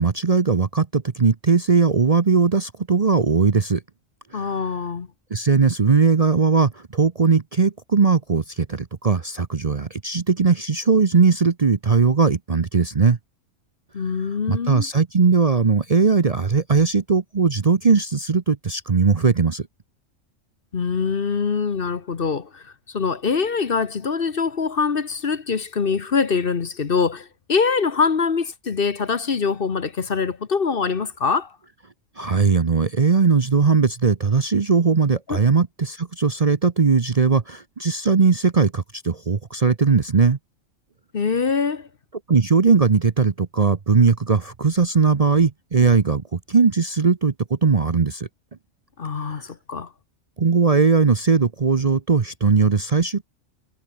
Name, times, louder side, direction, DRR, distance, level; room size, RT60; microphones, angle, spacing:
voice 1, 0.0-3.8 4.3-4.6 5.3-13.2 14.5-19.7 32.2-40.4 42.3-48.3 49.2-49.4 50.4-53.2, right 5 dB, 35° right, 0.8 m, -19 dB
voice 2, 4.3-5.1 13.9-14.9 20.7-31.5 35.3-35.4 41.1-41.9 49.0-49.9, left 5 dB, 45° left, 1.3 m, -24 dB
omnidirectional pair, 1.3 m